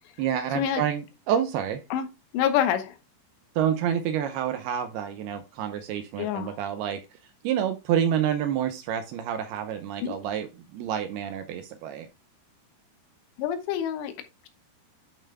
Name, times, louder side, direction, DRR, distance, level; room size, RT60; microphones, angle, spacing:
voice 1, 0.2-1.8 3.6-7.0 7.4-12.1, right 9 dB, 80° right, 2.5 m, -28 dB
voice 2, 2.3-3.0 6.2-6.6 10.0-10.1 13.4-14.1, left 9 dB, 80° left, 3.1 m, -26 dB
11.0 x 5.5 x 2.2 m
omnidirectional pair, 5.1 m